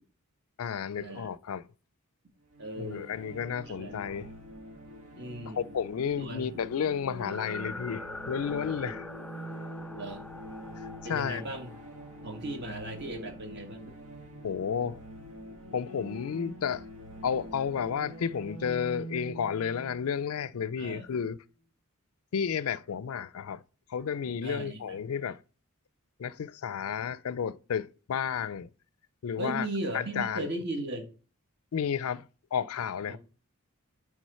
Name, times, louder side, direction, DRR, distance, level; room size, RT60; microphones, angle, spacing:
voice 1, 0.6-1.7 2.8-4.3 5.5-9.1 11.1-11.4 14.4-15.0 15.7-16.8 17.2-21.4 22.3-23.6 23.9-25.4 26.2-28.7 29.2-29.7 29.9-30.5 31.7-32.2 32.5-33.2, left 7 dB, 80° left, 0.4 m, -32 dB
sound 1, 2.5-21.1, equal, 75° right, 1.6 m, -45 dB
voice 2, 2.6-3.1 3.7-4.0 5.2-5.6 6.2-6.6 9.9-10.2 11.0-11.7 12.2-13.9 20.8-21.1 24.4-25.0 29.4-31.1 33.1-33.2, right 1 dB, 50° right, 1.8 m, -37 dB
sound 2, 7.3-13.2, left 2 dB, 5° left, 0.3 m, -44 dB
9.3 x 3.7 x 5.5 m
head